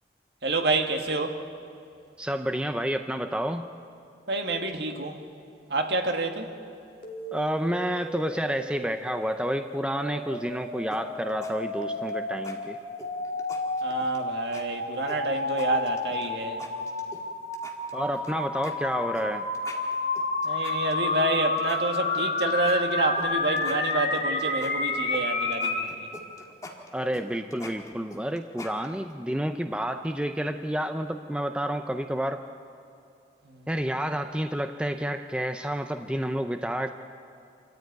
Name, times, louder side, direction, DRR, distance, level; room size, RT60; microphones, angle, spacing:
voice 1, 0.4-1.4 4.3-5.2 5.7-6.5 13.8-16.6 20.4-26.1 33.4-33.7, right 2 dB, 70° right, 4 dB, 1.8 m, -28 dB
voice 2, 2.2-3.7 7.3-12.8 17.9-19.4 26.9-32.5 33.7-36.9, equal, 5° right, 7 dB, 0.5 m, -29 dB
sound 1, 7.0-25.9, left 3 dB, 50° left, 2.6 m, -31 dB
sound 2, 10.9-11.5 11.8-12.1 12.4-12.6 13.0-14.2 14.5-14.6 15.1-16.3 16.6-17.2 17.5-18.3 18.6-18.7 19.1-19.3 19.5-21.3 21.6-23.3 23.6-25.2 25.5-29.1, left 2 dB, 20° left, 1.9 m, -44 dB
27.0 x 14.0 x 9.3 m, 2.5 s
head